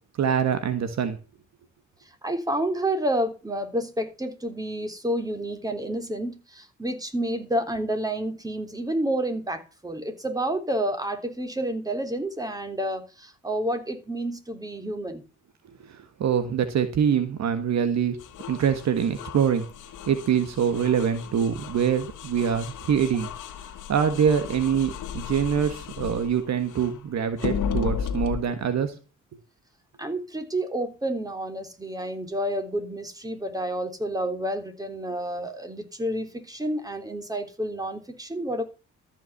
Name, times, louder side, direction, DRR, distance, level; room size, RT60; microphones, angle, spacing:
voice 1, 0.2-1.2 15.8-18.2 18.5-19.7 20.1-23.3 23.9-29.0, right 8 dB, 60° right, 10 dB, 1.6 m, -24 dB
voice 2, 2.2-15.2 30.0-38.6, right 1 dB, 10° right, 6 dB, 3.3 m, -29 dB
sound 1, 18.2-27.0 27.4-28.4, left 7 dB, 85° left, 1.9 m, -35 dB
13.5 x 6.0 x 8.0 m, 0.32 s
cardioid pair, 90°, 30 cm